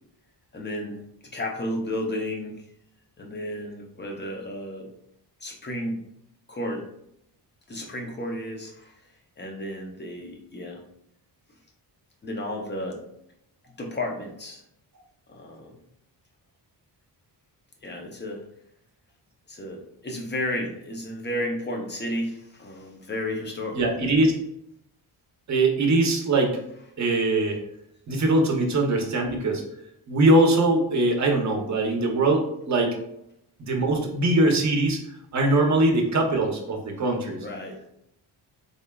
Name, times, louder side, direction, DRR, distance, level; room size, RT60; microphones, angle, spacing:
voice 1, 0.5-2.6 3.2-4.9 5.4-6.0 6.5-6.9 7.7-9.0 9.4-10.8 12.2-13.0 13.8-14.6 15.3-15.8 17.8-18.4 19.5-23.9 37.3-37.8, left 1 dB, 25° left, 0 dB, 0.6 m, -33 dB
voice 2, 23.7-24.3 25.5-26.6 27.0-27.6 28.1-29.6 30.1-32.9 33.6-35.0 35.3-37.4, right 2 dB, 40° right, 2 dB, 0.7 m, -22 dB
3.8 x 3.4 x 2.2 m, 0.76 s
wide cardioid pair, 175°, 43 cm